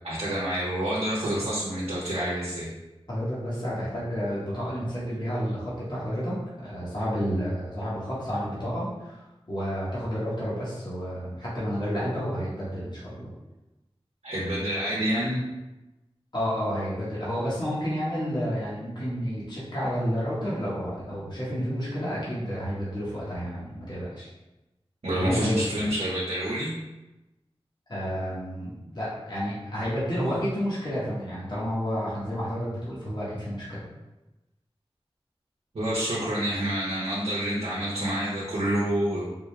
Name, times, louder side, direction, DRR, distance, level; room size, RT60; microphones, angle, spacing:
voice 1, 0.0-2.7 14.2-15.4 25.0-26.7 35.7-39.2, right 1 dB, 80° right, -6 dB, 0.8 m, -28 dB
voice 2, 3.1-13.3 16.3-24.3 25.2-25.8 27.9-33.8, equal, 45° left, -9 dB, 1.3 m, -30 dB
3.7 x 2.4 x 3.2 m, 1.0 s
wide cardioid pair, 50°, 10 cm